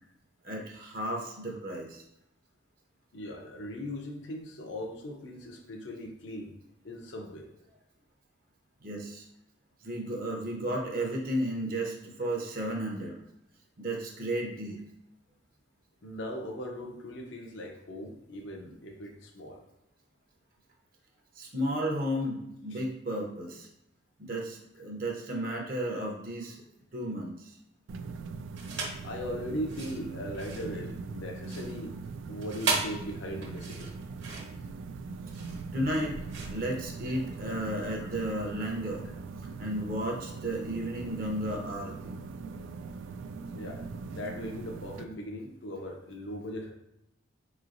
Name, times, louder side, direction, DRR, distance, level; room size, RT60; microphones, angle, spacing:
voice 1, 0.4-2.0 8.8-9.3 9.8-13.1 13.8-14.8 21.4-23.7 24.2-26.6 26.9-27.6 35.7-36.1 36.5-39.1 39.6-42.2, right 1 dB, 50° right, 0 dB, 0.6 m, -33 dB
voice 2, 3.1-6.6 6.8-7.5 16.0-19.6 22.7-22.8 25.9-26.0 29.0-31.9 32.3-33.9 38.0-38.1 43.5-46.7, equal, 75° left, 2 dB, 0.7 m, -39 dB
sound 1, 27.9-45.0, right 4 dB, 90° right, 0.3 m, -41 dB
sound 2, 28.5-29.1 29.6-37.4, right 4 dB, 70° right, 1.1 m, -37 dB
4.6 x 3.1 x 2.5 m, 0.83 s
head